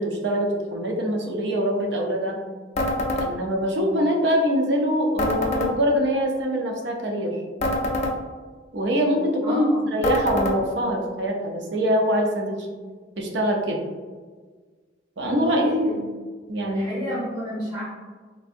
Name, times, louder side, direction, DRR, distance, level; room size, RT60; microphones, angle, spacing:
voice 1, 0.0-2.3 3.2-7.4 8.7-12.7 13.2-13.8 15.2-15.8 16.5-17.0, equal, 70° right, 1 dB, 0.5 m, -24 dB
sound 1, 2.8-3.3 5.2-5.7 7.6-8.1 10.0-10.6, left 1 dB, 40° left, 0.4 m, -24 dB
voice 2, 9.4-10.0 15.2-16.0 16.7-17.8, equal, 30° right, -10 dB, 0.9 m, -31 dB
3.3 x 2.6 x 2.5 m, 1.5 s
head